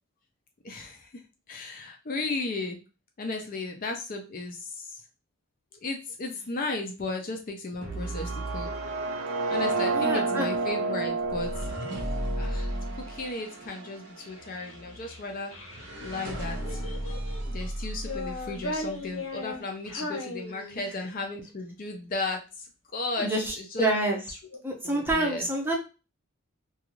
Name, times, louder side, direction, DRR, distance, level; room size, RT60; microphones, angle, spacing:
voice 1, 0.6-1.1 1.5-2.8 3.2-4.9 5.8-8.7 9.5-11.5 12.4-12.7 13.1-15.5 16.0-16.8 17.5-22.4 22.9-23.9 24.8-25.5, left 2 dB, 40° left, 3 dB, 0.4 m, -35 dB
sound 1, 7.8-19.1, right 1 dB, 55° right, 0.7 m, -37 dB
sound 2, 8.0-14.0, right 3 dB, 75° right, 0.4 m, -31 dB
voice 2, 9.9-10.5 23.2-24.2 24.6-25.8, right 1 dB, 10° right, -1 dB, 0.5 m, -27 dB
Child speech kid speaking, 14.2-15.9 16.6-17.5 17.9-21.1, left 2 dB, 70° left, 0.8 m, -38 dB
2.4 x 2.3 x 3.0 m, 0.31 s
head